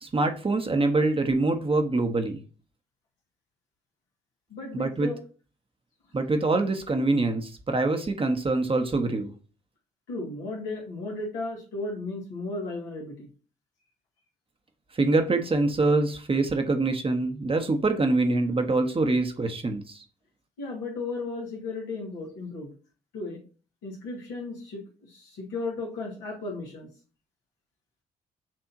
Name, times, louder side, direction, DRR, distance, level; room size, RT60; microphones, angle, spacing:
voice 1, 0.0-2.4 4.7-5.1 6.1-9.3 14.9-20.0, right 3 dB, 30° right, 6 dB, 1.0 m, -25 dB
voice 2, 4.5-5.2 10.1-13.3 20.6-22.7 23.1-23.4 23.8-26.9, left 3 dB, 80° left, -1 dB, 1.7 m, -35 dB
7.3 x 2.7 x 2.6 m, 0.37 s
hypercardioid pair, 45°, 19 cm